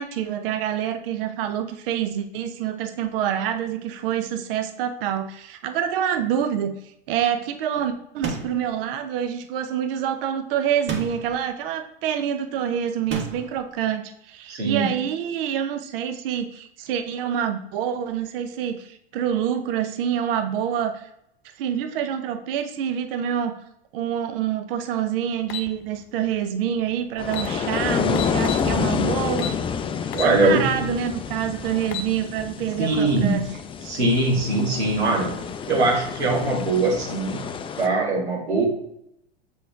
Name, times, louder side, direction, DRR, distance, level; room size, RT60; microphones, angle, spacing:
voice 1, 0.0-6.8 7.1-21.1 21.6-23.6 23.9-29.5 30.2-33.5, right 9 dB, 60° right, 8 dB, 0.8 m, -26 dB
sound 1, 8.2-8.7 10.9-11.4 13.1-13.6, right 4 dB, 35° right, 1.5 m, -31 dB
voice 2, 14.5-14.9 30.1-30.7 32.8-33.3 33.8-35.3 35.7-37.5 37.8-38.6, right 2 dB, 80° right, -5 dB, 2.6 m, -21 dB
sound 2, 25.5-25.7 26.9-27.0 27.3-27.5 28.2-28.7 29.4-29.6 30.1-30.4 30.8-30.9 31.7-32.1, left 9 dB, 55° left, 0.8 m, -31 dB
sound 3, 27.2-37.9, left 6 dB, 15° left, 0.4 m, -29 dB
6.9 x 4.3 x 3.6 m, 0.77 s
hypercardioid pair, 90°, 32 cm